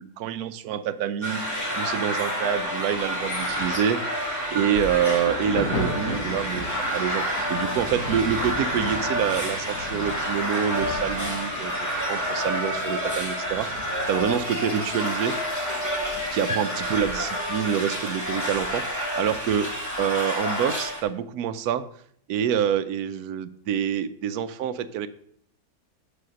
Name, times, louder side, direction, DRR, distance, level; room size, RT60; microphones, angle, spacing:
voice 1, 0.0-1.4 1.8-4.2 4.5-6.7 6.9-15.4 16.3-19.7 20.0-21.9 22.3-25.1, right 9 dB, 65° right, 11 dB, 1.0 m, -27 dB
sound 1, 1.2-21.0, equal, 10° left, 1.9 m, -29 dB
Thunder, 3.3-16.7 16.9-18.3 19.1-19.3, left 1 dB, 60° left, 2.1 m, -37 dB
7.7 x 6.7 x 6.2 m, 0.66 s
omnidirectional pair, 1.9 m